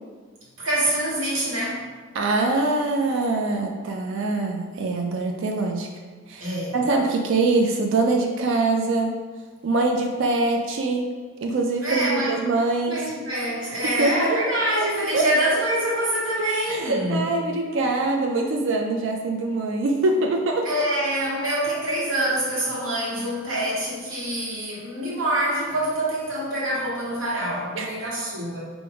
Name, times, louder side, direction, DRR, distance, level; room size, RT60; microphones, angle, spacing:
voice 1, 0.6-1.8 6.4-6.7 11.8-12.4 12.8-17.2 20.6-28.6, right 1 dB, 85° right, -6 dB, 1.4 m, -25 dB
voice 2, 2.1-5.9 6.3-9.2 9.6-11.1 11.4-13.0 13.7-14.4 15.1-15.6 16.7-20.7 27.8-28.1, right 3 dB, 65° right, 2 dB, 0.4 m, -24 dB
4.6 x 2.6 x 3.4 m, 1.5 s
head